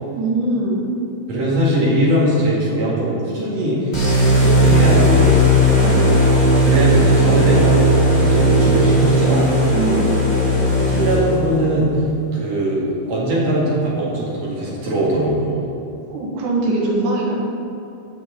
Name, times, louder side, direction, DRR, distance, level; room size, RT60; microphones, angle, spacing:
voice 1, 0.1-0.9 5.8-6.2 9.7-10.2 16.1-17.3, right 2 dB, 75° right, -5 dB, 3.6 m, -22 dB
voice 2, 1.3-4.0 4.3-5.3 6.6-9.5 10.8-12.0 12.3-12.8 13.1-15.6, right 1 dB, 45° right, -6 dB, 2.6 m, -20 dB
sound 1, 3.9-11.6, equal, 20° left, 1.7 m, -15 dB
8.5 x 6.3 x 7.8 m, 2.8 s
omnidirectional pair, 5.3 m